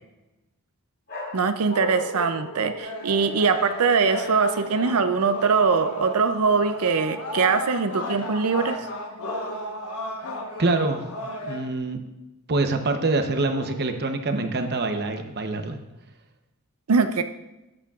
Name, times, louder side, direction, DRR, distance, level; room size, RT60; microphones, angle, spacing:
sound 1, 1.1-3.6 4.8-5.4 5.8-6.2 9.2-9.9 13.4-14.1, left 1 dB, 50° left, 2.5 m, -38 dB
voice 1, 1.3-8.9 16.9-17.2, right 5 dB, 75° right, 9 dB, 0.6 m, -22 dB
sound 2, 2.8-11.7, left 1 dB, 75° left, 1.1 m, -34 dB
voice 2, 10.6-11.0 11.4-12.0 12.5-15.8, right 3 dB, 50° right, 6 dB, 0.9 m, -25 dB
13.0 x 8.7 x 2.4 m, 0.98 s
head